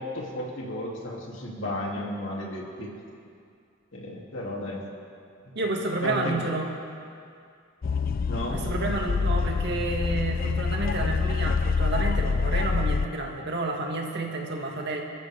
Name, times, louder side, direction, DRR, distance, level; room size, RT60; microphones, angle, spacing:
voice 1, 0.0-2.9 3.9-4.8 6.0-6.4 8.2-8.6, left 1 dB, 65° left, -3 dB, 3.0 m, -33 dB
voice 2, 5.6-6.7 8.5-15.0, right 2 dB, 55° right, 0 dB, 2.2 m, -30 dB
sound 1, 7.8-13.1, left 4 dB, 45° left, 0.4 m, -26 dB
28.0 x 14.0 x 3.7 m, 2.4 s
head